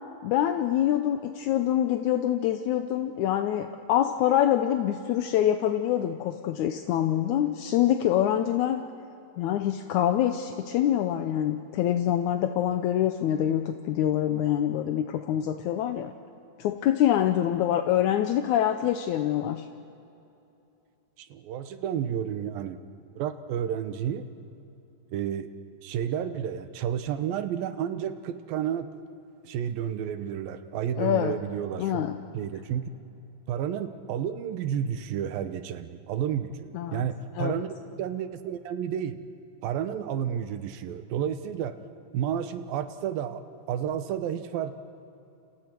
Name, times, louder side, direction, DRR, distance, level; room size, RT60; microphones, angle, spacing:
voice 1, 0.2-8.8 9.4-16.1 16.6-19.7 31.0-31.3 31.8-32.1 36.7-37.1 37.4-37.6, left 11 dB, 75° left, 6 dB, 1.9 m, -25 dB
voice 2, 21.2-22.8 23.2-24.3 25.1-25.5 25.8-28.9 29.4-32.1 32.3-32.9 33.5-39.2 39.6-41.8 42.1-44.7, right 9 dB, 85° right, 10 dB, 2.8 m, -31 dB
29.5 x 28.5 x 4.6 m, 2.8 s
omnidirectional pair, 4.1 m